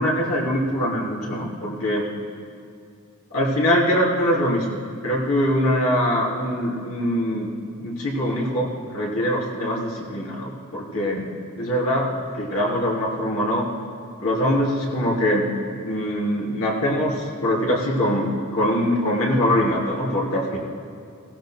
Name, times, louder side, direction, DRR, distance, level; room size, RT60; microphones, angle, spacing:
voice 1, 0.0-2.1 3.3-7.5 7.8-12.1 12.3-13.7 14.2-15.5 15.8-20.6, equal, 90° left, -4 dB, 3.5 m, -23 dB
18.5 x 16.5 x 2.2 m, 2.4 s
head